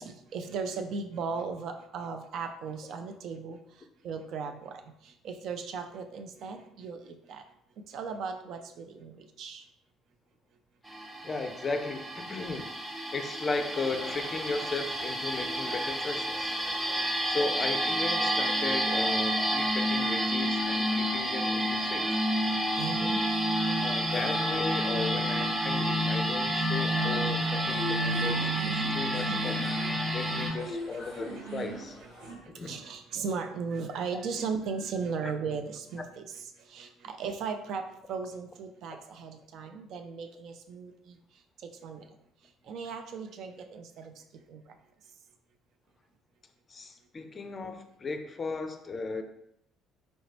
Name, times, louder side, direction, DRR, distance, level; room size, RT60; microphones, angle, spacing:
voice 1, 0.0-7.4 7.8-9.7 16.8-17.1 19.6-19.7 20.7-20.8 22.5-23.9 25.7-25.8 26.8-26.9 27.2-27.3 27.7-27.8 28.1-28.2 28.5-29.1 29.8-30.2 30.9-31.0 31.6-31.7 32.2-42.1 42.4-44.8, right 5 dB, 55° right, 6 dB, 0.4 m, -38 dB
sound 1, 10.9-30.5, equal, 15° right, 0.7 m, -29 dB
voice 2, 11.2-12.7 13.1-16.6 17.2-22.2 23.8-29.6 30.1-32.0 32.5-32.8 34.1-34.2 35.2-35.3 46.7-49.2, left 3 dB, 30° left, 7 dB, 0.4 m, -36 dB
sound 2, 13.9-32.3, right 1 dB, 90° right, 1.5 m, -44 dB
4.4 x 2.8 x 2.8 m, 0.77 s
figure-of-eight pair, 50°, 0 cm